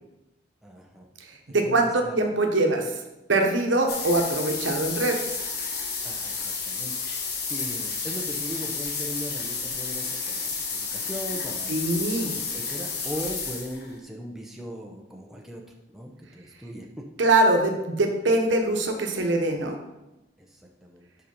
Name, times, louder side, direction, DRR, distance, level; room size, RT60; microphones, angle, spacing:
voice 1, 0.6-1.1 1.5-2.2 6.0-6.9 7.5-11.8 12.2-15.6 15.9-16.9 20.4-21.1, equal, ahead, 0 dB, 0.6 m, -39 dB
voice 2, 1.5-2.9 3.3-5.4 11.7-12.4 17.2-19.8, right 2 dB, 75° right, 3 dB, 1.0 m, -23 dB
sound 1, 3.9-13.9, left 4 dB, 55° left, 1.1 m, -31 dB
5.3 x 4.9 x 5.3 m, 0.97 s
head